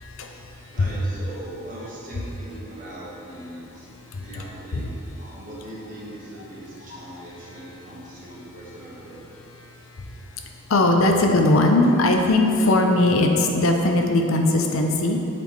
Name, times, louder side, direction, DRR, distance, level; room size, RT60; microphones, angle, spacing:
voice 1, 0.0-0.9 3.8-4.2 4.7-4.9 9.9-10.2 10.7-15.2, left 2 dB, 75° left, 3 dB, 0.6 m, -20 dB
voice 2, 0.7-3.9 4.2-9.3, right 1 dB, 40° right, -7 dB, 1.4 m, -40 dB
8.3 x 4.3 x 3.1 m, 2.9 s
head